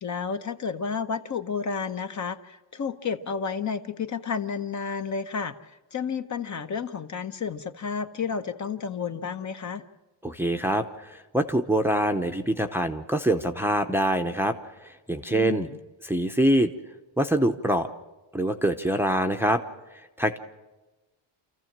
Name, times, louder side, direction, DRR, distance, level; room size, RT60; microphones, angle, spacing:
voice 1, 0.0-9.8 15.3-15.8, left 6 dB, 35° left, 9 dB, 0.9 m, -31 dB
voice 2, 10.2-14.6 14.8-15.7 16.0-16.7 17.2-17.9 18.3-19.6 20.2-20.4, right 1 dB, 5° right, 6 dB, 0.8 m, -24 dB
28.0 x 14.5 x 7.4 m, 1.2 s
cardioid pair, 160°, 50 cm